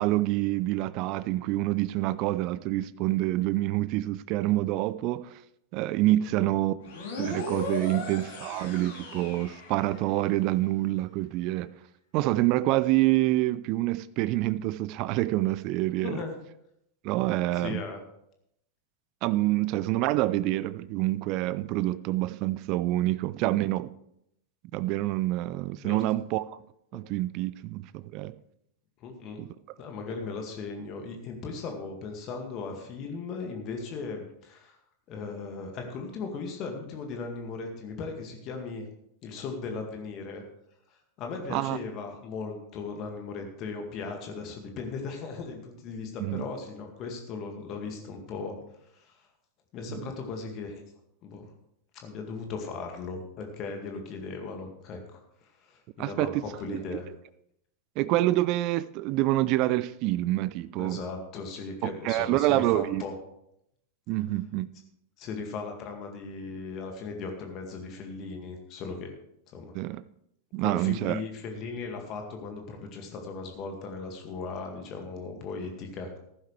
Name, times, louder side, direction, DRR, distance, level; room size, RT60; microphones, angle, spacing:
voice 1, 0.0-5.3 5.7-6.7 7.2-11.7 12.1-16.2 17.0-17.8 19.2-23.9 24.7-26.6 26.9-28.3 29.4-29.5 41.5-41.8 46.2-46.4 49.9-50.0 56.0-56.4 56.7-57.0 58.0-61.0 61.8-63.0 64.1-64.7 69.7-70.0 70.5-71.2, right 16 dB, 40° right, 0.5 m, -27 dB
sound 1, 6.8-10.3, left 3 dB, 55° left, 3.8 m, -38 dB
voice 2, 16.0-16.4 17.5-18.0 25.8-26.0 29.0-29.4 29.8-34.8 35.1-38.9 39.2-40.4 40.9-48.6 48.9-49.3 49.7-50.8 51.2-51.5 51.9-57.1 60.8-63.1 65.2-69.1 69.5-69.8 70.6-76.2, left 4 dB, 35° left, 2.1 m, -37 dB
14.5 x 12.0 x 3.3 m
figure-of-eight pair, 90°, 0 cm